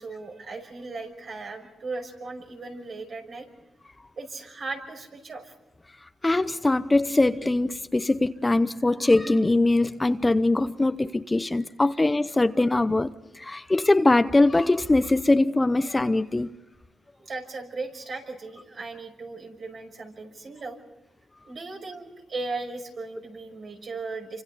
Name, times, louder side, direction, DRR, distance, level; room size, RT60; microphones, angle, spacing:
voice 1, 0.0-3.5 4.2-5.5 17.2-20.8 21.4-24.4, right 3 dB, 55° right, 5.8 m, -37 dB
voice 2, 6.2-16.5, left 2 dB, 20° left, 0.8 m, -22 dB
29.5 x 25.0 x 4.1 m
cardioid pair, 85°, 0 cm